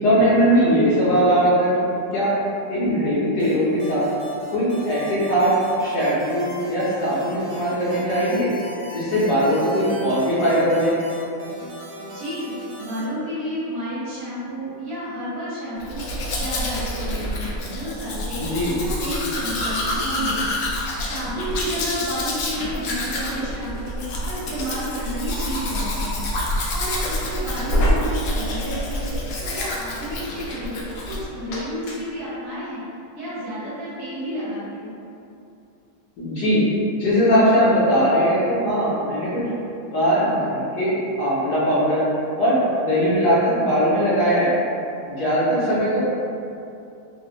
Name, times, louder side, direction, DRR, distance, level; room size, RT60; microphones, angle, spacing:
voice 1, 0.0-2.3 2.7-4.1 4.5-8.5 8.9-10.9 18.3-18.7 36.2-36.6 37.0-39.4 39.9-42.1 42.4-44.5 45.1-46.0, equal, 65° left, -9 dB, 1.2 m, -20 dB
sound 1, 3.4-13.0, left 1 dB, 85° right, 0.6 m, -39 dB
voice 2, 12.1-12.5 12.8-16.0 16.3-18.5 18.8-20.4 21.1-24.0 24.3-26.2 26.7-29.1 29.4-32.8 33.1-34.9, equal, 60° right, -11 dB, 1.4 m, -31 dB
Domestic sounds home sounds, 15.8-31.2 31.5-32.0, left 1 dB, 90° left, 0.7 m, -27 dB
3.4 x 2.3 x 2.8 m, 2.6 s
omnidirectional pair, 2.1 m